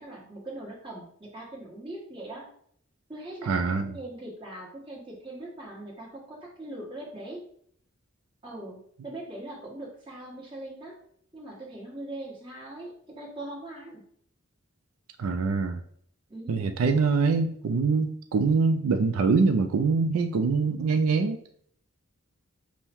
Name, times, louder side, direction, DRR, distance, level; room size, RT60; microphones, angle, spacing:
voice 1, 0.0-2.5 3.1-7.4 8.4-8.8 9.0-10.9 11.3-14.0 16.3-16.7, right 1 dB, 25° right, -4 dB, 1.4 m, -41 dB
voice 2, 3.5-4.0 15.2-15.8 16.5-21.4, right 4 dB, 85° right, 7 dB, 0.4 m, -24 dB
5.5 x 2.1 x 4.4 m, 0.63 s
head